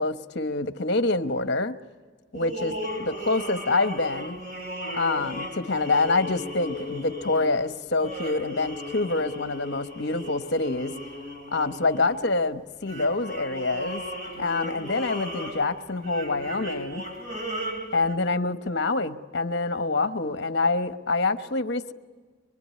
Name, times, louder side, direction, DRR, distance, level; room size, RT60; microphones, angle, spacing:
voice 1, 0.0-1.8 2.3-2.7 3.0-4.4 4.9-11.0 11.5-14.0 14.4-17.0 17.9-21.9, left 3 dB, 55° left, 1.1 m, -26 dB
sound 1, 2.3-12.4 12.9-18.2, equal, 40° right, 2.8 m, -36 dB
24.5 x 24.5 x 9.5 m
head